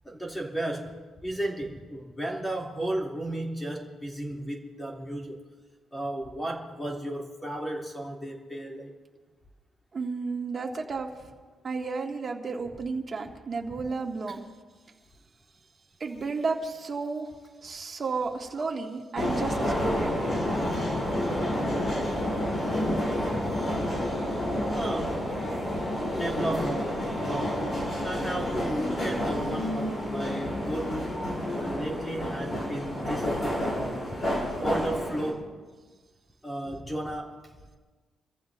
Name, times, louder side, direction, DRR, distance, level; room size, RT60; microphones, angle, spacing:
voice 1, 0.0-5.4 5.9-8.9 14.3-14.4 23.3-23.5 24.7-25.3 26.1-27.7 28.0-31.2 31.5-33.3 33.6-34.1 34.6-35.4 36.4-37.4, right 1 dB, 15° left, -2 dB, 3.1 m, -34 dB
voice 2, 9.9-11.1 11.6-14.4 16.0-17.3 17.6-20.1, right 4 dB, 40° right, 0 dB, 2.3 m, -32 dB
sound 1, 19.2-35.3, left 1 dB, 40° left, 6.5 m, -29 dB
28.5 x 15.0 x 2.7 m, 1.4 s
cardioid pair, 90°, 0 cm